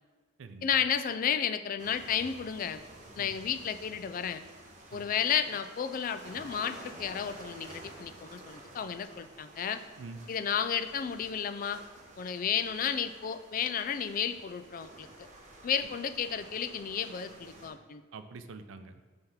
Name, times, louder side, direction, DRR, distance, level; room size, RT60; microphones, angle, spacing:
voice 1, 0.6-2.8 3.2-4.4 4.9-9.8 10.3-11.8 12.2-15.1 15.6-18.0, left 8 dB, 45° left, 11 dB, 0.3 m, -32 dB
sound 1, 1.8-17.7, right 1 dB, 40° right, 1.0 m, -51 dB
voice 2, 18.1-19.0, right 4 dB, 75° right, 9 dB, 0.5 m, -45 dB
5.6 x 3.4 x 5.7 m, 1.5 s
head